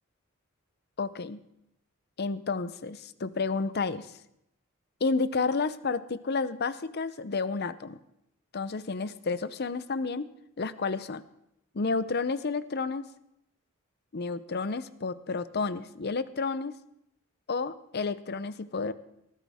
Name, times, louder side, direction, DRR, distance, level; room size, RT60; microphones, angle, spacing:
voice 1, 1.0-1.4 2.2-4.1 5.0-8.0 8.5-10.3 10.6-11.2 11.7-13.1 14.1-16.7 17.5-18.9, left 4 dB, 50° left, 14 dB, 0.7 m, -31 dB
19.0 x 14.5 x 3.6 m, 0.81 s
head